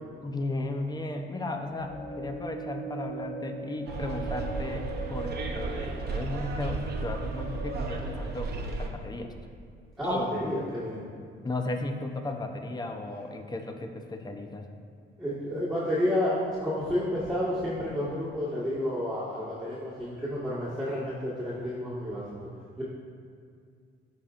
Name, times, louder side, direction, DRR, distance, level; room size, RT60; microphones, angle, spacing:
voice 1, 0.2-9.3 10.0-10.4 11.4-14.6, left 2 dB, 20° left, 4 dB, 0.7 m, -35 dB
sound 1, 1.6-8.9, right 3 dB, 60° left, 1.5 m, -41 dB
Bus, 3.9-8.9, right 3 dB, 55° right, 0.9 m, -34 dB
voice 2, 10.0-11.0 15.2-22.2 22.8-22.9, left 1 dB, ahead, -11 dB, 1.6 m, -30 dB
12.5 x 4.3 x 2.5 m, 2.2 s
cardioid pair, 90°, 20 cm